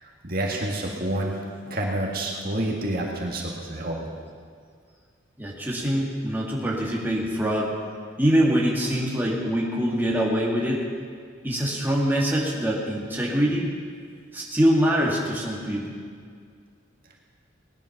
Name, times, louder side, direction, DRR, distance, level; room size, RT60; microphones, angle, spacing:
voice 1, 0.2-1.3 1.6-4.1, right 1 dB, 50° right, -1 dB, 1.9 m, -28 dB
voice 2, 5.4-7.7 8.2-10.8 11.4-13.7 14.3-16.0, equal, 10° right, -4 dB, 2.2 m, -24 dB
19.0 x 10.5 x 5.9 m, 2.1 s
head